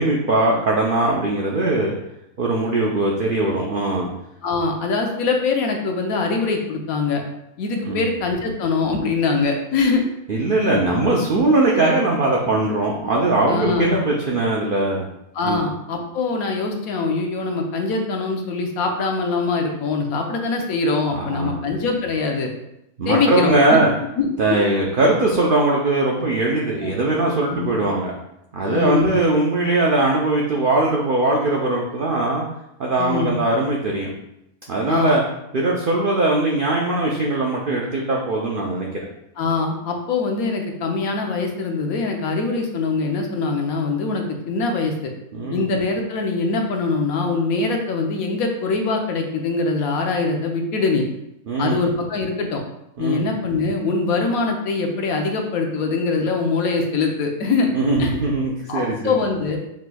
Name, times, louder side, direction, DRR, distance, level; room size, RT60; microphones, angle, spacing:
voice 1, 0.0-1.9 2.4-4.1 7.9-8.1 10.3-15.1 15.4-15.6 21.1-21.7 23.0-23.9 24.4-28.2 28.5-32.4 32.8-34.1 34.7-35.2 35.5-39.0 45.3-45.6 51.5-51.8 53.0-53.2 57.7-59.1, right 2 dB, 70° right, -2 dB, 0.5 m, -20 dB
voice 2, 4.4-7.2 7.6-10.0 11.3-11.4 13.5-14.0 15.3-22.5 23.0-23.8 24.2-24.3 27.5-27.7 28.6-29.1 33.0-33.4 34.9-35.2 39.4-44.9 45.5-51.1 51.6-52.6 53.0-57.7 58.0-58.1 58.7-59.6, left 4 dB, 75° left, 3 dB, 1.1 m, -23 dB
6.0 x 3.1 x 2.2 m, 0.82 s
omnidirectional pair, 1.6 m